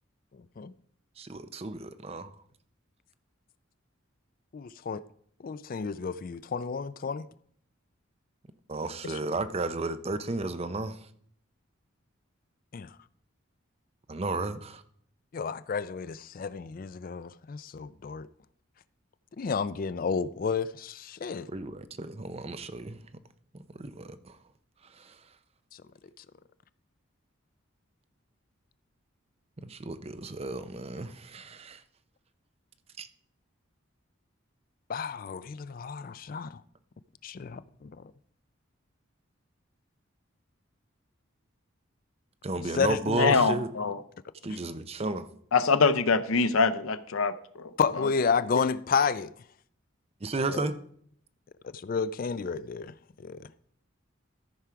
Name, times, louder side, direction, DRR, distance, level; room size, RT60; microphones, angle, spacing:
voice 1, 1.2-2.3 8.7-11.1 14.1-14.8 21.5-23.0 23.8-24.4 25.0-25.2 29.6-31.8 42.4-43.7 44.4-45.3 50.2-50.8, right 2 dB, 30° right, 0.6 m, -33 dB
voice 2, 4.5-5.0 5.4-7.3 12.7-12.9 15.3-18.3 19.4-21.5 26.2-26.3 34.9-36.6 37.2-37.9 42.6-43.3 47.8-49.3 50.5-50.6 51.6-53.4, left 5 dB, 45° left, 0.3 m, -31 dB
voice 3, 43.2-44.0 45.5-47.7, left 4 dB, 90° left, 0.6 m, -24 dB
13.5 x 4.7 x 5.8 m
head